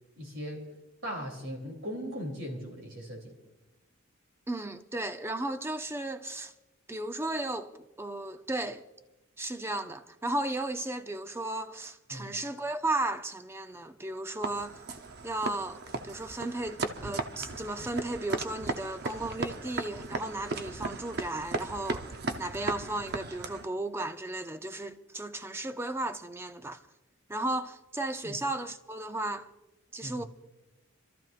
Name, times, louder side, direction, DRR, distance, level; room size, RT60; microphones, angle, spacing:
voice 1, 0.2-0.6 1.0-3.3 12.1-12.3 28.2-28.4 30.0-30.3, equal, 70° right, 3.0 m, -38 dB
voice 2, 4.5-6.5 6.9-8.8 9.4-14.8 15.2-22.0 22.4-26.8 27.3-29.5 29.9-30.2, right 2 dB, 10° right, 0.5 m, -35 dB
sound 1, 14.4-23.7, right 3 dB, 50° right, 0.8 m, -36 dB
29.5 x 13.5 x 2.5 m
head